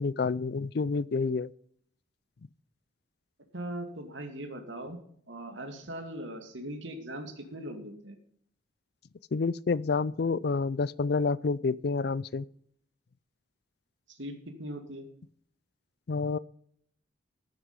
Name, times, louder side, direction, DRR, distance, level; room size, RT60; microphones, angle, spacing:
voice 1, 0.0-1.5 9.3-12.5 16.1-16.4, left 4 dB, 55° left, 0.4 m, -28 dB
voice 2, 3.5-5.0 5.3-8.2 14.1-15.1, right 1 dB, 75° right, 2.3 m, -40 dB
14.5 x 7.9 x 5.5 m
head